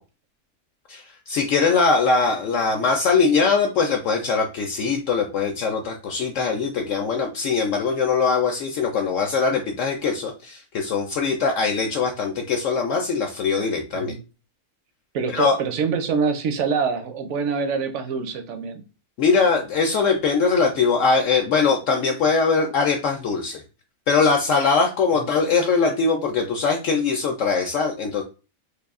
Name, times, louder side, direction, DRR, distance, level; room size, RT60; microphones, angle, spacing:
voice 1, 0.9-14.1 15.3-15.6 19.2-23.6 24.1-28.2, left 4 dB, 70° left, 0.8 m, -21 dB
voice 2, 15.1-18.8 25.1-25.3, right 5 dB, 65° right, 0.9 m, -25 dB
3.4 x 2.3 x 3.5 m
omnidirectional pair, 1.6 m